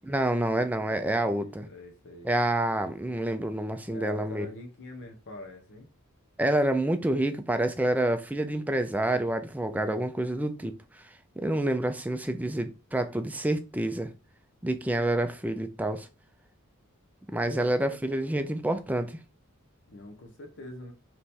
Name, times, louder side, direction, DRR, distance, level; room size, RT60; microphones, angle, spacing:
voice 1, 0.1-1.7 2.2-4.5 6.4-10.7 11.4-14.1 14.6-16.1 17.3-19.2, right 1 dB, 5° right, 0.4 m, -28 dB
voice 2, 0.9-2.3 3.9-5.9 17.4-18.0 19.9-20.9, left 2 dB, 55° left, 0.9 m, -45 dB
3.4 x 3.0 x 4.3 m
head